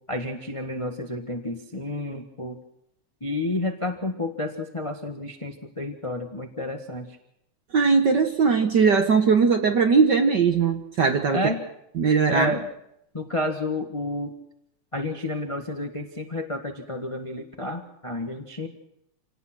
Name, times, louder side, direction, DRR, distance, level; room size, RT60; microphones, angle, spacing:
voice 1, 0.1-2.6 3.2-7.2 11.3-11.6 12.3-12.7 13.1-14.3 14.9-18.7, left 1 dB, 20° left, 4 dB, 0.9 m, -30 dB
voice 2, 7.7-11.4 12.0-12.6, right 5 dB, 60° right, 6 dB, 1.1 m, -20 dB
27.5 x 18.0 x 6.1 m, 0.77 s
omnidirectional pair, 3.4 m